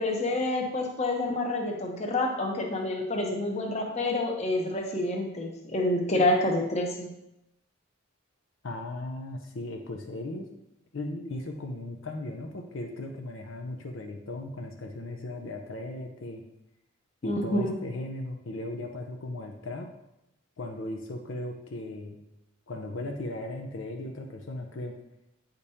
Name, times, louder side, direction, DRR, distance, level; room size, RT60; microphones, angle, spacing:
voice 1, 0.0-7.1 17.2-17.7, left 1 dB, 30° left, 1 dB, 0.9 m, -28 dB
voice 2, 8.6-10.5 10.9-16.4 17.2-19.9 20.6-22.2 22.7-25.0, left 2 dB, 70° left, 3 dB, 0.6 m, -37 dB
8.4 x 5.2 x 2.7 m, 0.87 s
head